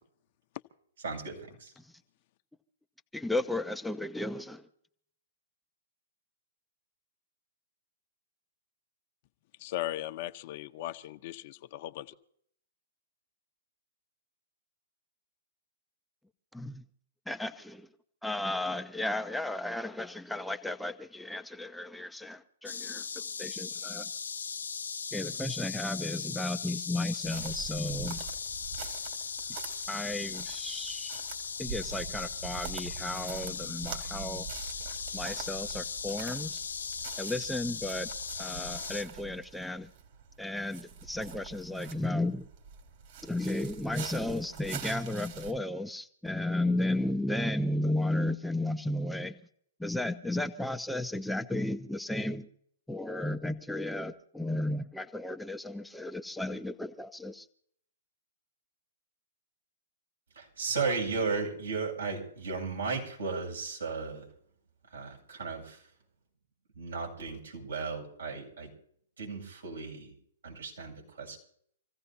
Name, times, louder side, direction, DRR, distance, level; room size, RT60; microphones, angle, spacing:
voice 1, 1.0-1.7 60.4-64.2 64.9-65.8 66.8-68.7 69.2-70.1 70.4-71.4, right 4 dB, 80° right, 0 dB, 7.5 m, -35 dB
voice 2, 3.1-4.7 16.5-16.8 17.3-17.9 18.2-24.1 25.1-28.2 29.9-31.2 31.6-34.5 35.1-36.6 37.2-38.1 38.4-39.9 40.4-42.5 43.2-49.4 49.8-52.5 52.9-57.5, left 1 dB, ahead, 7 dB, 0.7 m, -34 dB
voice 3, 9.6-12.1, left 14 dB, 50° left, 9 dB, 0.9 m, -38 dB
sound 1, 22.7-39.0, left 6 dB, 80° left, 0.6 m, -38 dB
sound 2, 27.2-45.5, right 6 dB, 50° right, 3.6 m, -44 dB
26.5 x 15.5 x 2.8 m, 0.66 s
hypercardioid pair, 125°, 0 cm